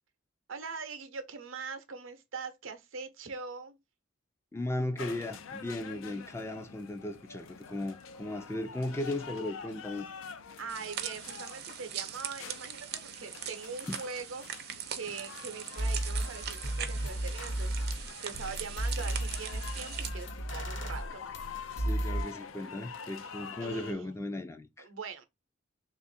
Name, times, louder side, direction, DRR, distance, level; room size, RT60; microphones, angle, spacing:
voice 1, 0.5-3.8 10.6-21.3 23.6-24.2 24.8-25.2, right 5 dB, 85° right, 0.7 m, -42 dB
voice 2, 4.5-10.1 13.9-14.0 21.8-24.9, left 1 dB, 15° left, 0.3 m, -36 dB
sound 1, 5.0-23.9, left 6 dB, 90° left, 0.5 m, -47 dB
sound 2, 10.7-20.1, right 9 dB, 50° right, 0.5 m, -41 dB
sound 3, 15.3-15.4 15.8-22.2, right 1 dB, 70° left, 1.0 m, -34 dB
3.3 x 2.5 x 4.1 m
head